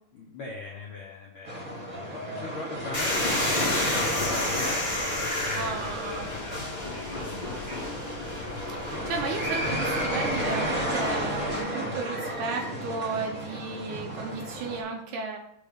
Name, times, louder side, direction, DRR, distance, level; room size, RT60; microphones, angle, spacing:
voice 1, 0.1-6.6 6.9-8.3 9.2-9.6 11.6-12.0, left 3 dB, 70° left, -3 dB, 1.2 m, -42 dB
sound 1, 1.4-14.8, equal, 30° right, 1.7 m, -32 dB
sound 2, 2.9-11.6, left 2 dB, 40° left, 0.6 m, -32 dB
voice 2, 5.6-6.3 8.7-15.4, right 4 dB, 75° right, 2 dB, 2.4 m, -34 dB
6.6 x 3.5 x 5.3 m, 0.75 s
omnidirectional pair, 3.6 m